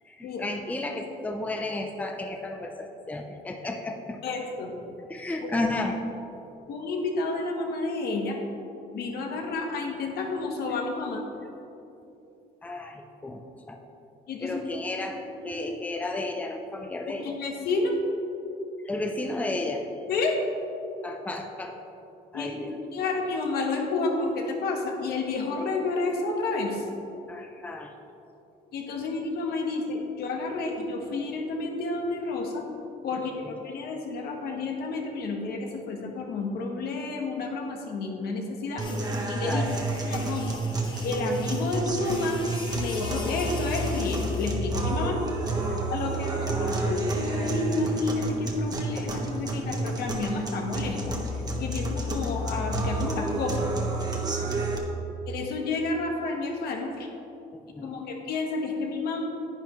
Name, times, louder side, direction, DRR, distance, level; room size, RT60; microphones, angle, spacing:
voice 1, 0.1-4.2 5.1-6.0 12.6-13.4 13.7-13.8 14.4-17.3 18.8-19.9 21.0-21.7 22.3-22.8 27.3-27.9 33.1-33.2 39.4-39.8 45.7-46.1 54.4-54.6 57.5-58.0, left 2 dB, 10° left, 3 dB, 0.6 m, -33 dB
voice 2, 4.2-4.7 5.4-5.5 6.7-8.4 8.9-11.2 14.3-14.6 15.4-15.5 17.2-17.9 20.1-20.4 22.3-26.8 28.7-32.7 33.0-38.9 39.3-39.6 40.1-40.6 41.0-42.4 42.7-45.2 45.9-51.0 51.6-53.6 55.3-57.1 57.8-59.3, left 3 dB, 70° left, 1 dB, 1.4 m, -30 dB
sound 1, 38.8-44.6, left 3 dB, 25° left, 1.2 m, -42 dB
sound 2, 38.8-54.8, right 2 dB, 25° right, 1.2 m, -30 dB
10.5 x 9.0 x 3.2 m, 2.9 s
cardioid pair, 110°, 17 cm